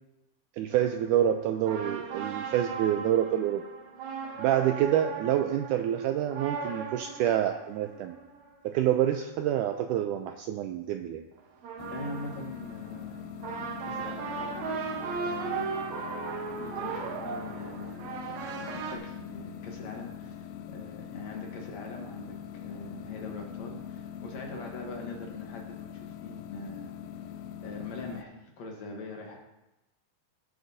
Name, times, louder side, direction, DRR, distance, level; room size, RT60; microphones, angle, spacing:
voice 1, 0.6-3.6 4.4-8.2 8.6-11.2, right 11 dB, 85° right, 6 dB, 1.8 m, -27 dB
sound 1, 0.7-9.3 11.4-19.0, right 5 dB, 65° right, 2.1 m, -37 dB
sound 2, 11.8-28.2, left 9 dB, 85° left, 2.3 m, -43 dB
voice 2, 11.9-13.2 13.4-13.5 13.8-14.5 14.9-15.7 16.5-18.0 18.3-20.5 20.7-26.9 27.6-29.4, left 2 dB, 60° left, 1 dB, 2.1 m, -42 dB
16.5 x 7.9 x 2.7 m, 0.97 s
omnidirectional pair, 4.0 m